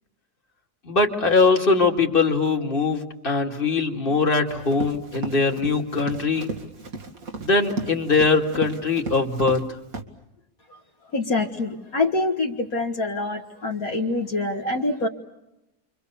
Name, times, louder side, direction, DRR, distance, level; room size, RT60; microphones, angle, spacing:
voice 1, 0.8-6.5 7.4-9.8, left 4 dB, 35° left, 2 dB, 2.8 m, -21 dB
Run, 4.5-9.6 9.9-10.0, right 3 dB, 60° right, 2.6 m, -35 dB
voice 2, 11.1-15.1, left 2 dB, 65° left, 2 dB, 2.3 m, -25 dB
29.5 x 24.5 x 7.0 m, 0.89 s
omnidirectional pair, 1.7 m